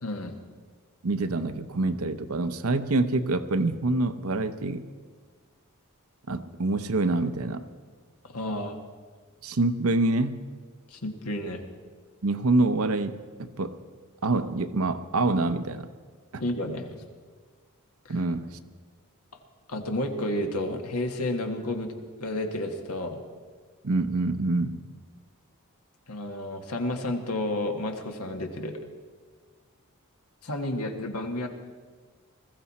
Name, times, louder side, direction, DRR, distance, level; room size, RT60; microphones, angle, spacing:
voice 1, 0.0-0.4 8.2-8.8 10.9-11.6 16.4-16.9 18.0-18.1 19.7-21.9 22.2-23.2 26.1-28.8 30.4-31.5, left 1 dB, 85° left, 4 dB, 1.7 m, -31 dB
voice 2, 1.0-4.9 6.3-7.6 9.4-10.4 12.2-13.8 14.2-15.9 16.3-16.4 18.1-18.6 23.8-24.8, right 2 dB, 70° right, 10 dB, 0.8 m, -26 dB
20.5 x 15.0 x 4.2 m, 1.5 s
head